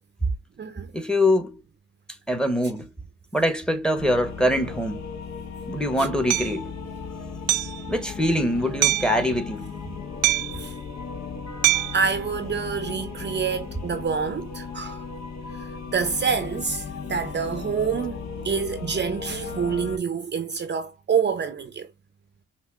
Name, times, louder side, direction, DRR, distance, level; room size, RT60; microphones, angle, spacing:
voice 1, 0.9-1.5 2.3-2.9 3.3-5.0 5.7-6.7 7.9-9.7, left 1 dB, 5° left, 1.1 m, -23 dB
sound 1, 4.0-20.0, left 5 dB, 60° left, 1.3 m, -36 dB
Hammer, 6.3-6.5 7.5-7.8 8.8-9.2 10.2-10.6 11.6-12.0, right 17 dB, 85° right, 0.5 m, -22 dB
voice 2, 11.9-15.0 15.9-21.9, right 6 dB, 35° right, 0.7 m, -27 dB
5.8 x 2.6 x 2.4 m
cardioid pair, 90°, 30 cm